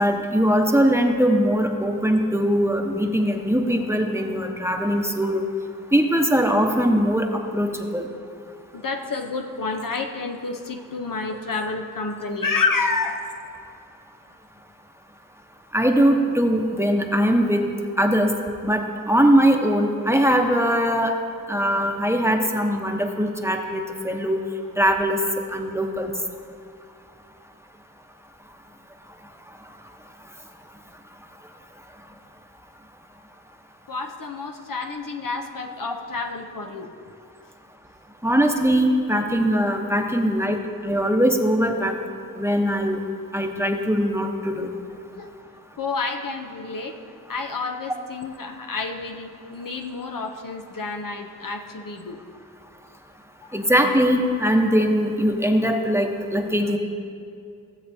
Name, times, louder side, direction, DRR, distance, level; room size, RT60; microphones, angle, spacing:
voice 1, 0.0-5.5 5.9-8.1 15.7-17.7 18.0-18.3 18.6-21.1 21.5-24.4 24.8-25.2 25.5-26.1 38.2-41.9 42.4-43.0 43.3-44.7 53.5-56.8, equal, 10° right, 2 dB, 0.9 m, -21 dB
voice 2, 8.7-13.2 33.9-36.9 45.2-45.3 45.8-47.0 47.3-52.2 53.4-53.6, left 4 dB, 70° left, 3 dB, 0.8 m, -29 dB
16.0 x 7.6 x 2.7 m, 2.5 s
wide cardioid pair, 40°, 34 cm